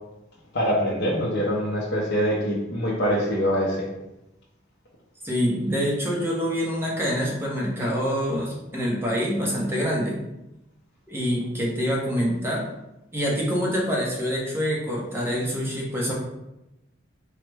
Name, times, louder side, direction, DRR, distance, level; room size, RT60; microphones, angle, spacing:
voice 1, 0.5-3.9, equal, 65° left, -5 dB, 0.6 m, -24 dB
voice 2, 5.2-10.2 11.1-12.7 13.1-16.1, equal, 10° right, -4 dB, 0.6 m, -26 dB
3.0 x 2.0 x 3.2 m, 0.93 s
head